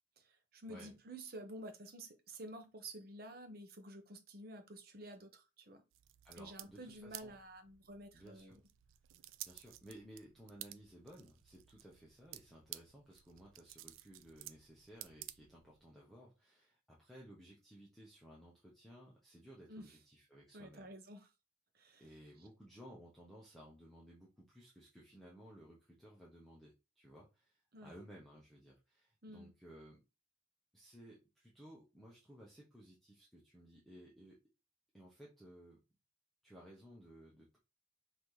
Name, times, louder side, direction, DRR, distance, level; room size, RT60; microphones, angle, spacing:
voice 1, 0.2-5.8 6.4-8.6 19.7-19.9 20.5-21.3 21.7-22.1 22.4-22.5 27.7-28.0 29.2-29.5, right 1 dB, 50° right, 0.9 m, -51 dB
sound 1, 5.9-15.9, right 15 dB, 90° right, 0.4 m, -54 dB
voice 2, 6.2-7.3 8.1-8.6 9.4-20.9 22.0-30.0 30.7-34.4 34.9-35.8 36.4-37.6, equal, ahead, 0.9 m, -57 dB
5.7 x 2.8 x 3.2 m
head